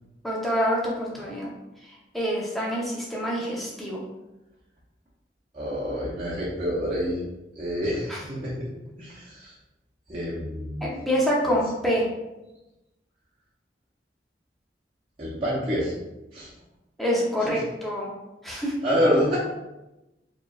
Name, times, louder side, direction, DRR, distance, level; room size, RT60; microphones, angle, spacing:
voice 1, 0.2-1.5 2.1-4.0 8.1-8.2 10.8-12.0 17.0-18.1 18.4-18.7, equal, ahead, -5 dB, 0.8 m, -26 dB
voice 2, 5.5-7.2 7.5-8.7 9.0-9.5 10.1-10.9 15.2-15.9 16.3-16.5 17.4-17.6 18.8-19.4, equal, 30° right, -9 dB, 0.8 m, -27 dB
4.7 x 3.1 x 2.4 m, 1.0 s
head